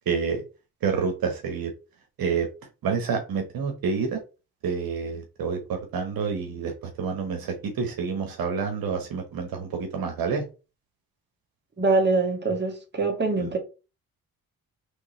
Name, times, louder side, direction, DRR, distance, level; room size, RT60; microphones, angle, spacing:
voice 1, 0.1-0.4 0.8-1.7 2.2-2.5 2.8-4.2 4.6-10.5 13.4-13.5, right 5 dB, 70° right, 1.1 m, -28 dB
voice 2, 11.8-13.6, right 3 dB, 30° right, 1.8 m, -24 dB
3.6 x 3.2 x 4.1 m
supercardioid pair, 60°, 37 cm